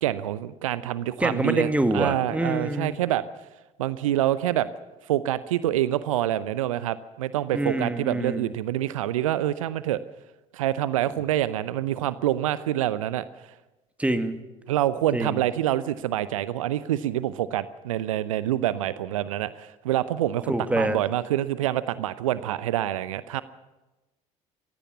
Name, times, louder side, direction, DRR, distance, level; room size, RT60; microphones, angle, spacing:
voice 1, 0.0-3.2 3.8-4.7 5.1-10.0 10.5-13.2 14.7-23.4, right 13 dB, 75° right, 16 dB, 0.7 m, -26 dB
voice 2, 1.2-3.0 7.5-8.5 14.0-14.4 15.1-15.4 20.5-21.0, right 1 dB, 5° right, 8 dB, 2.2 m, -26 dB
24.5 x 17.0 x 7.2 m, 1.1 s
figure-of-eight pair, 55°, 17 cm